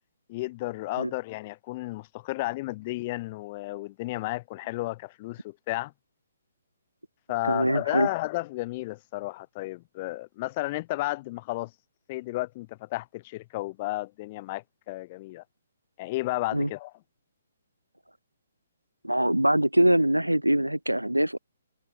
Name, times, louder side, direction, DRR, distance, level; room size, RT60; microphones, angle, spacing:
voice 1, 0.3-5.9 7.3-11.7 12.1-15.4 16.0-16.9, left 20 dB, 30° left, 0.5 m, -33 dB
voice 2, 7.4-8.1 16.5-16.7 19.0-21.4, right 1 dB, 90° right, 0.4 m, -23 dB
figure-of-eight pair, 130°, 0 cm